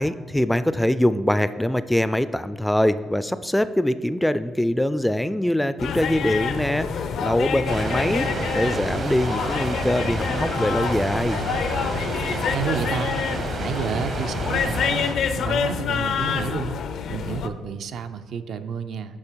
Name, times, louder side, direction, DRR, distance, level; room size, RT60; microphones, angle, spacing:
voice 1, 0.0-8.3 8.5-11.4, left 1 dB, 5° left, 13 dB, 0.3 m, -23 dB
sound 1, 5.8-17.5, left 6 dB, 70° left, 0.5 m, -27 dB
sound 2, 7.7-15.1, right 3 dB, 55° right, 0.9 m, -30 dB
voice 2, 12.3-13.3 13.5-16.8 17.1-19.2, right 6 dB, 70° right, 10 dB, 0.5 m, -30 dB
8.6 x 4.8 x 4.6 m, 1.5 s
cardioid pair, 90°, 0 cm